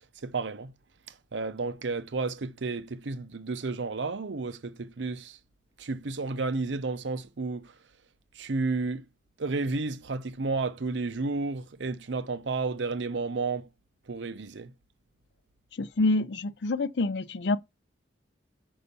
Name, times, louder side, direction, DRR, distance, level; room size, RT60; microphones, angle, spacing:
voice 1, 0.2-0.7 1.3-5.4 5.8-7.7 8.3-9.1 9.4-13.7 14.1-14.7, right 3 dB, 80° right, 0.7 m, -32 dB
voice 2, 15.7-17.6, left 2 dB, 70° left, 0.5 m, -27 dB
5.6 x 5.5 x 6.8 m
head